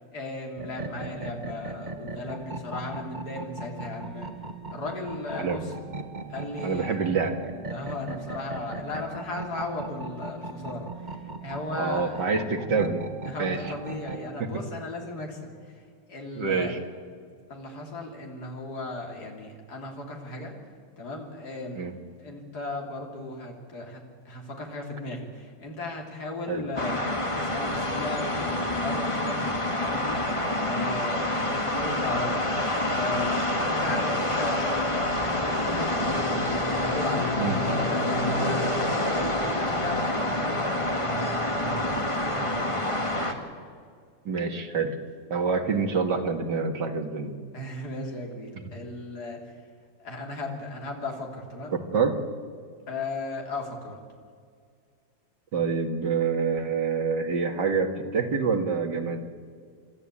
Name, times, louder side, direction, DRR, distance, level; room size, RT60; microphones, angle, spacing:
voice 1, 0.0-4.3 4.7-5.7 6.3-7.0 7.7-12.3 13.2-16.7 17.5-20.5 21.0-21.8 22.2-32.6 32.9-36.4 36.6-43.3 47.5-49.7 50.0-51.8 52.9-54.0, left 2 dB, 60° left, 1 dB, 3.7 m, -36 dB
sound 1, 0.6-14.3, right 2 dB, 25° right, 1.3 m, -38 dB
voice 2, 6.6-7.3 11.8-13.0 13.4-13.6 14.4-14.5 16.4-16.8 21.8-21.9 26.5-26.6 37.4-37.6 44.3-45.0 45.3-47.3 51.9-52.2 55.5-59.2, right 5 dB, 70° right, 5 dB, 2.4 m, -26 dB
sound 2, 26.8-43.3, left 1 dB, 15° left, 1.8 m, -27 dB
30.0 x 13.5 x 8.6 m, 2.1 s
omnidirectional pair, 2.0 m